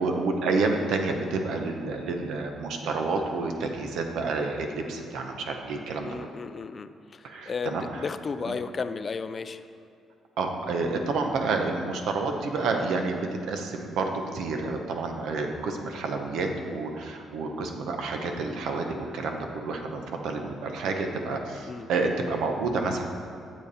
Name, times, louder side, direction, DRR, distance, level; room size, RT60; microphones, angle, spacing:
voice 1, 0.0-6.3 7.2-8.1 8.4-8.6 10.4-23.0, right 3 dB, 85° right, 4 dB, 0.9 m, -29 dB
voice 2, 6.0-6.9 7.5-9.6 21.7-21.9, left 5 dB, 40° left, 11 dB, 0.4 m, -33 dB
7.9 x 7.1 x 4.2 m, 2.5 s
cardioid pair, 90°, 0 cm